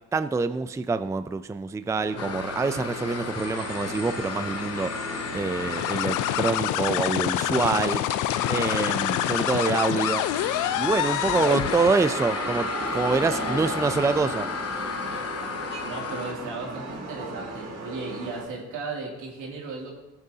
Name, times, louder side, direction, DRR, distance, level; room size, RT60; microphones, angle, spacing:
voice 1, 0.1-4.9 5.3-8.0 8.5-10.3 10.8-14.5, right 4 dB, 10° right, 12 dB, 0.4 m, -26 dB
sound 1, 2.0-18.4, right 2 dB, 60° right, 2.6 m, -37 dB
sound 2, 2.2-16.3, left 6 dB, 55° left, 0.9 m, -34 dB
sound 3, 5.6-12.1, left 14 dB, 85° left, 0.5 m, -27 dB
voice 2, 15.8-20.0, right 3 dB, 85° right, -1 dB, 2.7 m, -35 dB
16.5 x 8.8 x 2.8 m, 1.0 s
cardioid pair, 90°, 30 cm